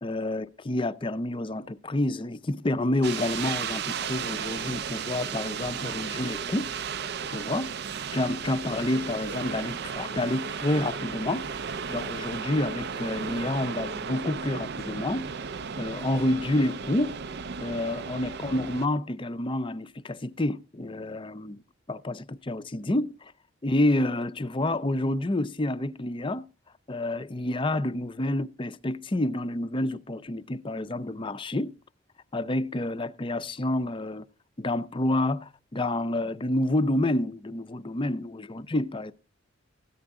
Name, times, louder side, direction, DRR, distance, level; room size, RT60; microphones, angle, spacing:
voice 1, 0.0-6.7 7.3-7.7 8.1-11.5 11.9-15.3 15.8-17.1 17.6-21.6 21.9-23.3 23.6-26.5 26.9-31.7 32.3-34.3 34.6-39.1, left 1 dB, 25° left, 0.5 m, -28 dB
sound 1, 3.0-18.9, right 6 dB, 55° right, 0.5 m, -34 dB
14.0 x 9.8 x 3.6 m
head